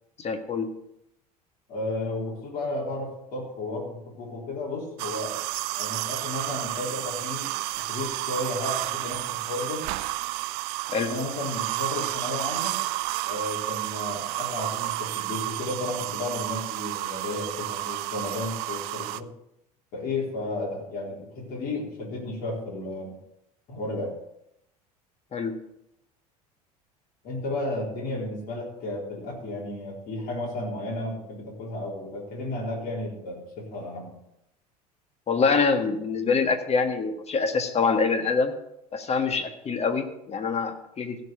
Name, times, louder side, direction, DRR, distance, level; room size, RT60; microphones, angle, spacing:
voice 1, 0.2-0.7 10.9-11.1 25.3-25.6 35.3-38.5 38.9-41.2, left 4 dB, 30° left, 7 dB, 1.7 m, -25 dB
voice 2, 1.7-5.4 5.7-9.8 10.9-12.8 13.2-19.3 19.9-23.2 23.7-24.1 27.2-34.1, left 2 dB, 50° left, -3 dB, 3.8 m, -33 dB
sound 1, 5.0-19.2, right 18 dB, 55° right, 0.5 m, -31 dB
16.0 x 5.5 x 6.5 m, 0.81 s
figure-of-eight pair, 70°, 20 cm